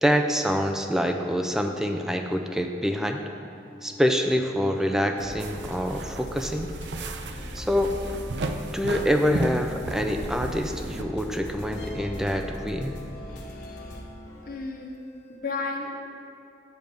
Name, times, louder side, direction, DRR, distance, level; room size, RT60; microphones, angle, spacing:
voice 1, 0.0-3.2 3.8-6.7 7.5-7.9 8.7-13.0, equal, 5° right, 4 dB, 0.4 m, -26 dB
sound 1, 3.5-15.4, left 1 dB, 15° left, 1.3 m, -48 dB
sound 2, 5.2-14.0, equal, 80° left, 1.1 m, -39 dB
sound 3, 5.4-11.0, right 3 dB, 75° right, 0.5 m, -35 dB
voice 2, 13.3-14.1 14.5-14.9 15.4-15.9, left 3 dB, 55° left, 1 dB, 0.9 m, -34 dB
9.0 x 3.5 x 6.4 m, 2.8 s
head